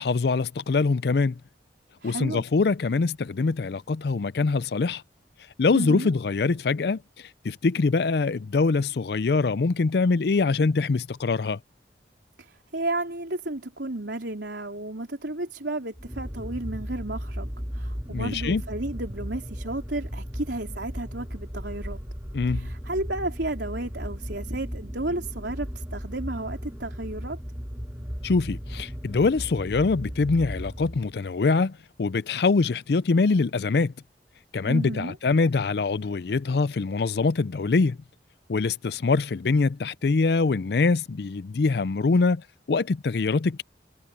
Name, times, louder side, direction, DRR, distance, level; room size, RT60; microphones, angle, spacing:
voice 1, 0.0-1.3 2.0-5.0 5.6-7.0 7.4-11.6 18.1-18.6 22.3-22.7 28.2-31.7 32.0-33.9 34.5-38.0 38.5-42.4 42.7-43.6, left 4 dB, 70° left, 0.5 m, -24 dB
voice 2, 2.0-2.4 5.7-6.1 12.4-22.0 22.5-27.4 34.7-35.2, right 2 dB, 85° right, 3.9 m, -33 dB
sound 1, 15.9-31.3, equal, 15° right, 3.4 m, -36 dB
head